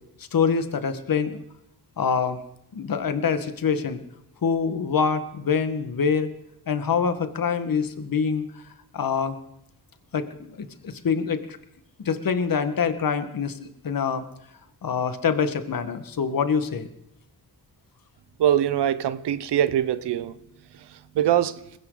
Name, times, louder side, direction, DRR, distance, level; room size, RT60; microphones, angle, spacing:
voice 1, 0.3-1.4 2.0-2.4 2.7-4.0 4.4-6.3 6.7-8.6 8.9-9.3 10.1-11.6 12.0-14.2 14.8-16.9, left 6 dB, 55° left, 10 dB, 1.7 m, -25 dB
voice 2, 18.4-20.3 21.1-21.5, right 10 dB, 85° right, 14 dB, 1.0 m, -22 dB
20.0 x 17.0 x 4.0 m, 0.80 s
cardioid pair, 65°, 40 cm